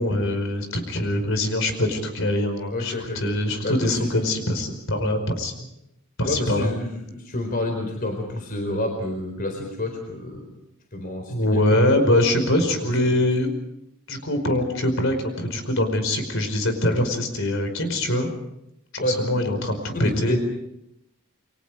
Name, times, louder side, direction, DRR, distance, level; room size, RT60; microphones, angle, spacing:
voice 1, 0.0-5.7 6.2-6.7 11.3-13.5 14.1-18.3 18.9-20.4, left 1 dB, 60° left, 8 dB, 5.1 m, -23 dB
voice 2, 2.7-4.1 6.2-10.5 10.9-11.8 12.7-12.9 19.0-19.5 19.9-20.4, left 1 dB, 40° left, 3 dB, 4.4 m, -29 dB
29.5 x 24.0 x 5.0 m, 0.82 s
head